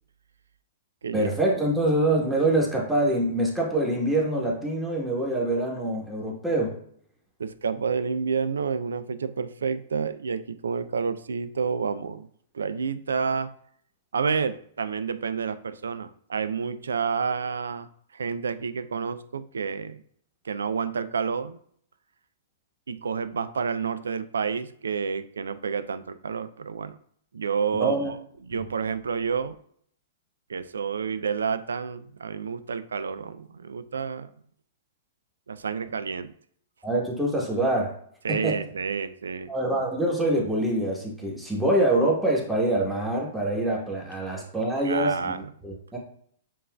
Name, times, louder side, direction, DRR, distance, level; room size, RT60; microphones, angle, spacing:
voice 1, 1.1-6.7 27.7-28.1 36.8-37.9 38.3-38.6 39.5-45.7, right 1 dB, 5° right, -3 dB, 1.1 m, -25 dB
voice 2, 7.4-12.3 12.5-13.5 14.1-20.0 20.4-21.6 22.9-27.0 27.3-29.6 30.5-34.3 35.5-36.3 38.2-39.5 44.8-45.5, right 5 dB, 90° right, 13 dB, 0.3 m, -29 dB
7.3 x 2.5 x 2.2 m, 0.64 s
hypercardioid pair, 125°, 0 cm